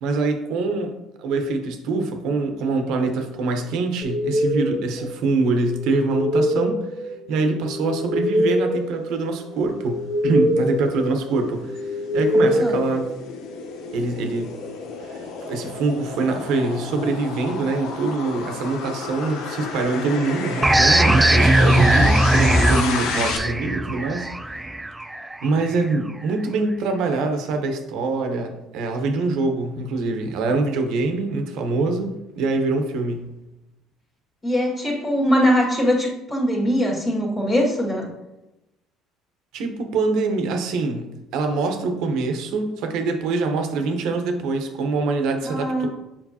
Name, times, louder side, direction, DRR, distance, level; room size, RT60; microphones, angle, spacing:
voice 1, 0.0-0.9 1.2-6.9 7.3-11.7 12.1-13.1 13.9-14.5 15.1-15.2 15.5-24.3 25.4-33.3 39.5-41.1 41.3-45.9, right 3 dB, 70° right, 5 dB, 1.0 m, -24 dB
sound 1, 4.0-13.7, equal, 55° left, 1.9 m, -25 dB
sound 2, 10.2-23.4, left 4 dB, 75° left, 0.9 m, -32 dB
sound 3, 20.6-25.9, right 1 dB, 10° right, 0.3 m, -19 dB
voice 2, 34.4-38.1 45.4-45.9, equal, 30° left, -4 dB, 1.9 m, -21 dB
7.3 x 5.1 x 2.8 m, 0.96 s
cardioid pair, 100°, 0 cm